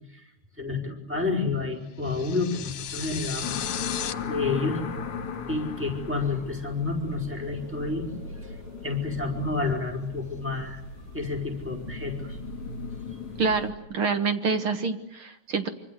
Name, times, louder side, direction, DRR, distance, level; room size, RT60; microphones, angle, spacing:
voice 1, 0.6-3.5 3.9-4.8 5.5-8.5 8.8-10.8 11.1-12.4, left 3 dB, 5° right, 1 dB, 4.6 m, -30 dB
sound 1, 2.0-4.1, left 10 dB, 70° left, 2.4 m, -35 dB
sound 2, 2.8-13.7, right 2 dB, 65° right, 4.6 m, -42 dB
sound 3, 3.4-13.6, left 8 dB, 50° left, 3.0 m, -38 dB
voice 2, 13.4-15.7, right 4 dB, 50° right, 8 dB, 2.0 m, -27 dB
25.5 x 25.5 x 8.2 m, 0.76 s
omnidirectional pair, 3.5 m